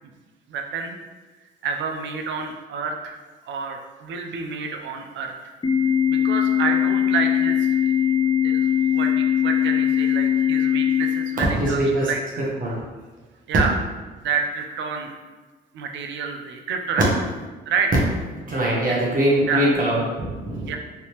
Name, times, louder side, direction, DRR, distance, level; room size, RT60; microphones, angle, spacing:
voice 1, 0.5-0.9 1.6-3.2 3.5-5.5 6.1-7.9 8.4-12.2 13.5-13.8 14.2-15.2 15.7-17.1 17.7-17.9 18.9-19.0 19.4-19.7 20.7-20.8, right 5 dB, 70° right, 4 dB, 0.5 m, -28 dB
Organ, 5.6-11.6, left 9 dB, 25° left, 0.5 m, -21 dB
voice 2, 11.5-12.1 12.6-12.8 18.5-20.7, right 1 dB, 45° right, -5 dB, 0.9 m, -22 dB
3.3 x 2.8 x 2.9 m, 1.2 s
cardioid pair, 90°, 20 cm